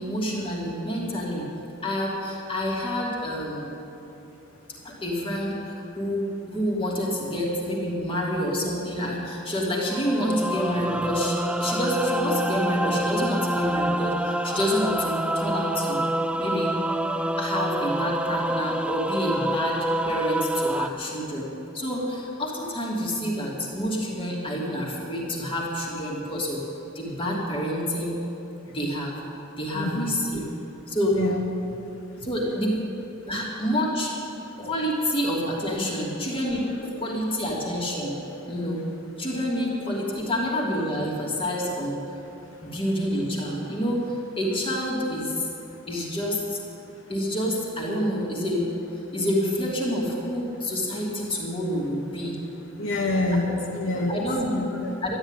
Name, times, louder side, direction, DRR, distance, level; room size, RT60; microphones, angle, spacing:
voice 1, 0.0-1.5 1.8-3.7 4.8-16.0 16.4-16.8 17.4-26.6 26.9-28.2 28.7-29.2 29.6-30.4 30.9-31.2 32.2-32.8 33.3-34.1 34.6-38.2 38.5-38.9 39.2-42.0 42.6-45.5 45.9-46.6 47.1-48.7 49.1-52.4 53.3-53.4 54.1-54.7 55.0-55.2, equal, 25° left, -3 dB, 2.7 m, -28 dB
sound 1, 9.9-20.9, right 1 dB, 5° right, 0.4 m, -27 dB
voice 2, 29.7-30.2 31.1-31.4 32.2-32.3 42.5-42.7 45.7-45.8 46.8-47.0 52.7-54.2 54.5-55.0, left 2 dB, 70° left, 1 dB, 1.3 m, -27 dB
13.0 x 11.0 x 9.0 m, 2.9 s
head